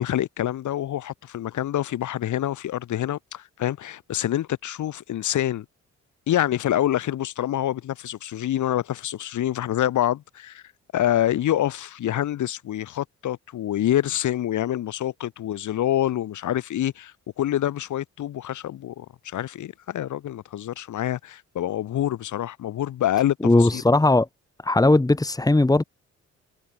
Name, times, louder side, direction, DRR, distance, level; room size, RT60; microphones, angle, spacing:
voice 1, 0.0-5.7 6.3-10.6 10.9-23.8, left 12 dB, 75° left, 7.1 m, -26 dB
voice 2, 23.4-24.3 24.6-25.8, left 2 dB, 10° left, 2.7 m, -18 dB
cardioid pair, 90°, 30 cm